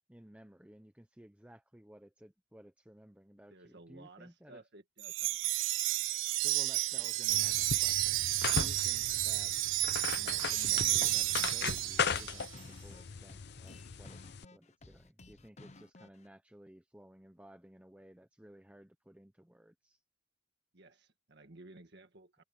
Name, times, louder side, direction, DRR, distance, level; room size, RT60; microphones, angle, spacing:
voice 1, 0.1-4.6 6.4-9.6 10.2-20.0, equal, 5° right, 0.9 m, -56 dB
voice 2, 3.5-5.4 6.8-7.1 20.7-22.4, right 2 dB, 60° right, 1.8 m, -56 dB
Wind chime, 5.0-12.5, right 19 dB, 80° right, 0.4 m, -31 dB
sound 1, 7.3-14.5, left 6 dB, 60° left, 0.7 m, -38 dB
sound 2, 10.3-16.3, left 2 dB, 35° left, 0.9 m, -56 dB
head